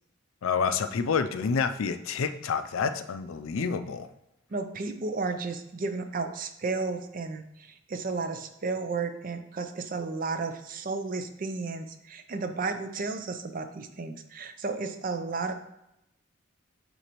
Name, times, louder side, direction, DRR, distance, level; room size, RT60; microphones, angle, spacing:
voice 1, 0.4-4.1, left 5 dB, 85° left, 10 dB, 0.4 m, -28 dB
voice 2, 4.5-15.5, right 4 dB, 45° right, 8 dB, 0.5 m, -33 dB
8.0 x 3.9 x 3.0 m, 0.87 s
head